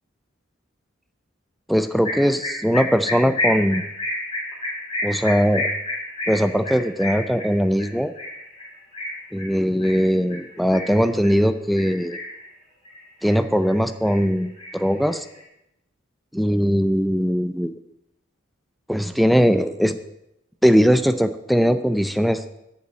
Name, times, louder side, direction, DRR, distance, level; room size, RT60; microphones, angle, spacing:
voice 1, 1.7-3.9 5.0-5.7 6.3-8.1 9.3-12.2 13.2-15.3 16.3-17.7 18.9-20.0 20.6-22.4, equal, ahead, 10 dB, 0.4 m, -20 dB
sound 1, 2.0-11.4 11.8-12.5 12.8-13.8 14.0-15.4, left 1 dB, 30° left, 2.8 m, -30 dB
7.4 x 7.2 x 7.5 m, 0.84 s
head